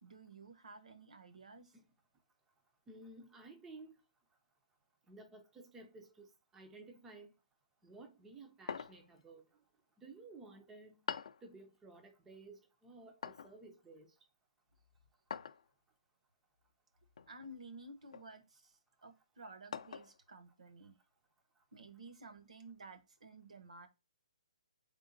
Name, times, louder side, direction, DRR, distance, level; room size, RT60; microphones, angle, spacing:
voice 1, 0.0-1.7 17.3-18.7 19.0-21.0 21.7-23.9, right 2 dB, 80° right, 1.0 m, -53 dB
voice 2, 2.9-3.9 5.1-7.3 7.8-9.4 10.0-11.0 11.4-14.1, right 3 dB, 5° right, 0.4 m, -55 dB
sound 1, 8.7-9.2 11.1-11.5 13.2-13.6 15.3-15.7 17.2-17.5 18.1-18.3 19.7-20.2, left 7 dB, 65° left, 0.4 m, -44 dB
4.2 x 3.6 x 2.6 m
hypercardioid pair, 170°, 4 cm